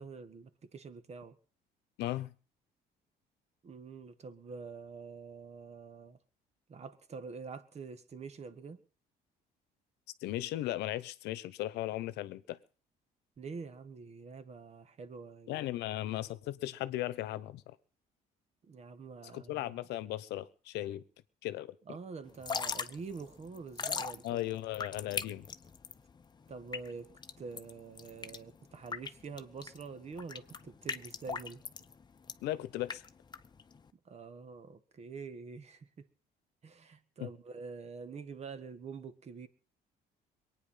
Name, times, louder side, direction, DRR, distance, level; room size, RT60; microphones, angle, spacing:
voice 1, 0.0-1.4 3.6-6.2 6.7-8.8 13.4-15.8 18.7-19.6 21.9-24.4 26.5-31.6 34.0-36.1 36.6-39.5, right 5 dB, 40° right, 1.6 m, -46 dB
voice 2, 2.0-2.3 10.2-12.6 15.5-17.8 19.3-21.0 21.4-21.8 24.2-25.4 32.4-33.0 37.2-37.3, left 15 dB, 85° left, 1.0 m, -37 dB
Drip / Trickle dribble, 22.3-33.9, left 5 dB, 25° left, 0.9 m, -41 dB
22.5 x 9.3 x 5.7 m
cardioid pair, 110°, 17 cm